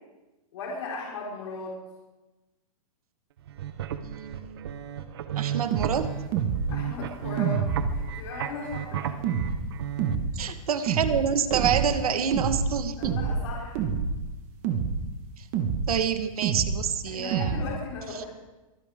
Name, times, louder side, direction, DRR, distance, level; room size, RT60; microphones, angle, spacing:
voice 1, 0.5-1.8 6.7-9.1 9.9-10.3 13.0-13.8 17.1-18.3, left 3 dB, 50° left, -4 dB, 4.6 m, -37 dB
sound 1, 3.4-10.1, right 9 dB, 45° right, 0.9 m, -34 dB
voice 2, 4.0-4.7 5.4-6.1 10.3-13.2 15.4-15.5 15.9-17.8 18.1-18.3, right 7 dB, 80° right, 9 dB, 1.4 m, -28 dB
sound 2, 5.7-5.9 6.3-6.7 7.4-8.1 9.2-9.6 10.0-10.3 10.9-11.2 11.5-11.9 12.3-12.7 13.0-13.5 13.7-14.2 14.6-15.0 15.5-15.9 16.4-16.8 17.3-17.6, right 6 dB, 25° right, 1.3 m, -27 dB
23.5 x 15.5 x 3.6 m, 1.1 s
hypercardioid pair, 180°, 19 cm